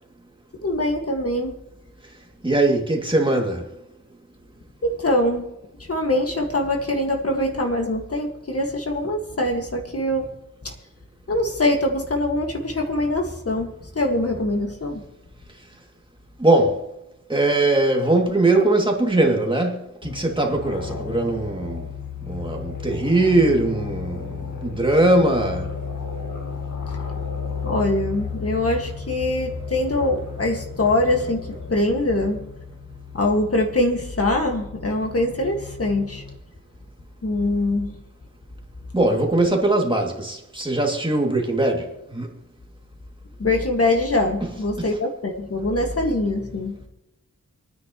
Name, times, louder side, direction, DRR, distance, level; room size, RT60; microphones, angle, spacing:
voice 1, 0.6-1.5 4.8-5.4 5.9-10.3 10.6-10.7 11.3-15.0 27.6-32.4 33.1-36.2 37.2-37.9 43.4-46.8, left 1 dB, 50° left, 1.9 m, -23 dB
voice 2, 2.4-3.7 16.4-16.8 17.3-21.9 22.2-25.7 38.9-42.3, right 2 dB, 15° right, 2.5 m, -21 dB
sound 1, 20.0-36.4, left 6 dB, 90° left, 1.7 m, -34 dB
27.5 x 9.7 x 3.1 m
wide cardioid pair, 115°, 30 cm